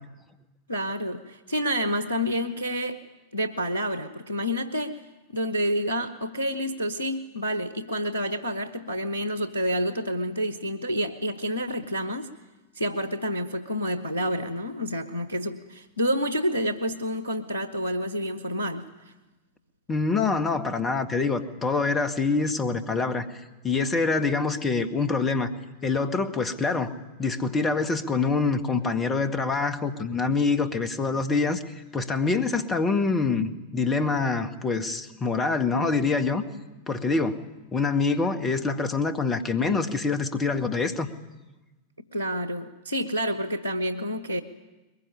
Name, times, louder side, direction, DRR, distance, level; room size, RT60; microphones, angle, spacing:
voice 1, 0.7-3.0 3.3-5.0 5.3-12.3 12.8-19.1 42.1-44.4, equal, 85° left, 10 dB, 1.1 m, -29 dB
voice 2, 19.9-25.5 25.8-36.4 36.9-37.4 37.7-41.1, left 4 dB, 20° left, 9 dB, 1.8 m, -25 dB
22.0 x 21.5 x 9.9 m, 1.1 s
figure-of-eight pair, 90°, 0 cm